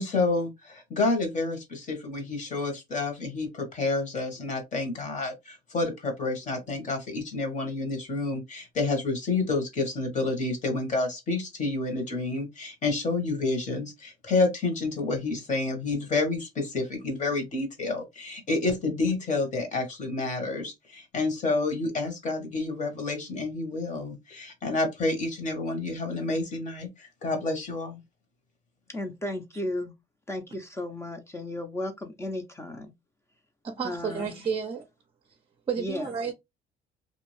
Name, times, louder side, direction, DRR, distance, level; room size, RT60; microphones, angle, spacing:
voice 1, 0.0-28.0, left 3 dB, 45° left, 1.2 m, -29 dB
voice 2, 28.9-29.9 30.3-32.9 33.8-34.3 35.8-36.1, left 1 dB, 15° left, 0.6 m, -34 dB
voice 3, 33.6-34.8 35.7-36.3, right 6 dB, 30° right, 0.6 m, -31 dB
2.6 x 2.3 x 3.1 m
cardioid pair, 110°, 17 cm